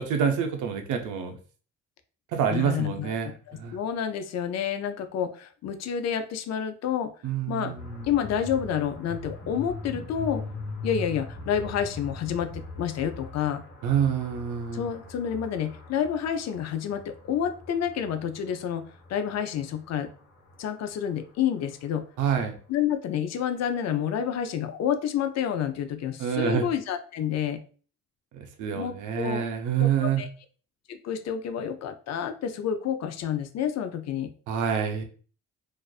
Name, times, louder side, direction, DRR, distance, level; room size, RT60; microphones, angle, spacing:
voice 1, 0.0-1.4 2.3-3.8 7.2-8.1 13.8-14.9 22.2-22.6 26.2-26.6 28.3-30.2 34.5-35.0, right 8 dB, 75° right, 5 dB, 0.6 m, -27 dB
voice 2, 2.5-7.1 7.5-7.7 8.0-10.5 10.8-13.6 14.7-18.8 19.1-20.1 20.6-22.0 22.7-27.6 28.7-29.4 29.8-30.3 30.9-34.3, left 8 dB, 60° left, 9 dB, 0.4 m, -29 dB
sound 1, 7.8-21.7, left 2 dB, 35° left, 1.1 m, -41 dB
2.4 x 2.4 x 2.3 m, 0.40 s
cardioid pair, 90°, 30 cm